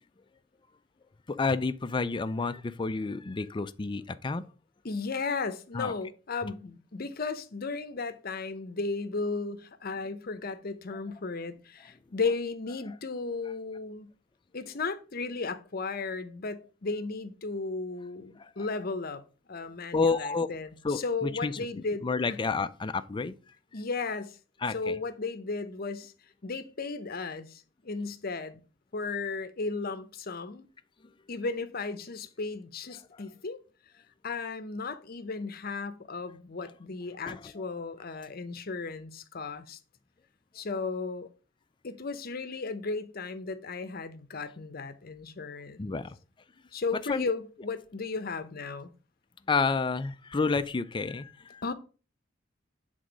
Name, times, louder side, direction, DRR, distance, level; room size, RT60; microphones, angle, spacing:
voice 1, 1.3-4.5 5.7-5.9 18.4-18.5 19.9-20.5 20.8-23.4 24.6-25.0 37.2-37.4 45.8-46.2 47.1-47.2 49.5-51.6, left 4 dB, 25° left, 0.4 m, -30 dB
voice 2, 4.8-14.1 14.5-19.2 19.5-22.4 23.7-24.4 24.7-26.1 26.4-28.6 28.9-30.7 31.3-33.6 34.2-39.8 40.5-41.3 41.8-46.0 46.7-48.9 51.6-51.7, left 4 dB, 50° left, 0.7 m, -35 dB
7.9 x 3.7 x 5.1 m
head